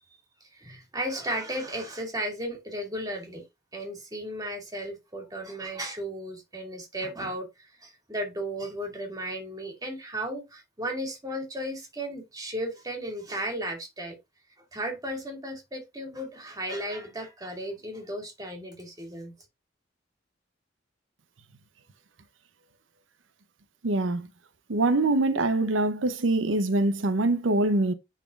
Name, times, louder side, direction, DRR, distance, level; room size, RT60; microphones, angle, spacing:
voice 1, 0.5-3.4 3.7-14.2 14.7-19.3, right 1 dB, 20° right, 2.4 m, -35 dB
voice 2, 23.8-24.3 24.7-27.9, right 2 dB, 85° right, 0.7 m, -24 dB
10.0 x 4.2 x 2.4 m
head